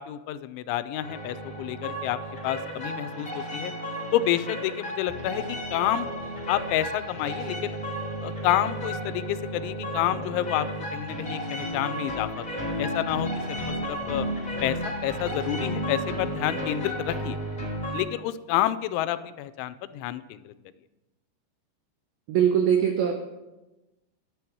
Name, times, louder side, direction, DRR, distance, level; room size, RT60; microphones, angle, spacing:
voice 1, 0.0-2.2 2.4-3.7 4.1-6.1 6.5-7.8 8.2-10.7 10.9-14.3 14.6-17.4 17.9-20.5, left 13 dB, 90° left, 14 dB, 3.0 m, -29 dB
sound 1, 1.0-18.0, equal, 10° left, 3.1 m, -33 dB
voice 2, 22.3-23.2, right 8 dB, 80° right, 4 dB, 2.1 m, -22 dB
11.0 x 11.0 x 4.6 m, 1.0 s
omnidirectional pair, 5.3 m